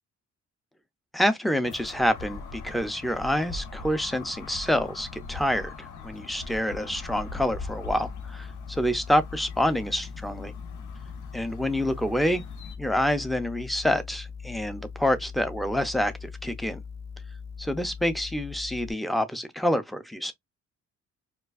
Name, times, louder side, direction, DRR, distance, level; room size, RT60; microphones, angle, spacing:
voice 1, 1.1-10.5 11.3-12.4 12.8-16.8 17.6-20.3, equal, ahead, 0.5 m, -27 dB
sound 1, 1.6-12.8, left 4 dB, 85° left, 0.9 m, -41 dB
sound 2, 7.5-18.9, left 5 dB, 60° left, 1.2 m, -41 dB
4.5 x 2.3 x 2.5 m
cardioid pair, 110°, 29 cm